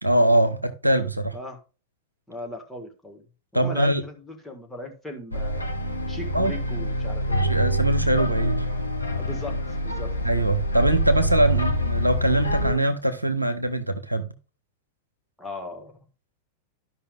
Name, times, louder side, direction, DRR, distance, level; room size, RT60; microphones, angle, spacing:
voice 1, 0.0-1.3 3.5-4.0 6.3-6.5 7.5-8.6 10.2-14.3, right 1 dB, 85° right, 0.8 m, -22 dB
voice 2, 2.3-3.2 3.5-5.7 6.1-7.6 9.2-10.1 11.5-11.7 15.4-16.0, left 2 dB, 5° left, 2.0 m, -38 dB
sound 1, 5.3-12.7, equal, 85° left, 1.0 m, -26 dB
13.5 x 5.6 x 2.4 m
figure-of-eight pair, 90°, 0 cm